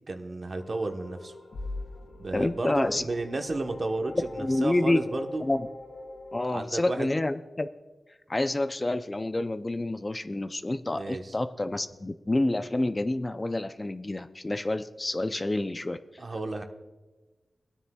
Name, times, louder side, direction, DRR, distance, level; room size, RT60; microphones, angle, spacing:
voice 1, 0.1-1.3 2.2-5.4 6.5-7.1 10.9-11.3 16.2-16.6, right 2 dB, 55° right, 5 dB, 1.0 m, -33 dB
sound 1, 0.6-6.4, left 2 dB, 85° left, 1.5 m, -42 dB
voice 2, 2.3-3.0 4.4-5.0 5.4-5.7 6.3-7.7 8.3-16.0, left 2 dB, 30° left, 10 dB, 0.5 m, -28 dB
19.0 x 9.7 x 2.3 m, 1.2 s
cardioid pair, 55°, 0 cm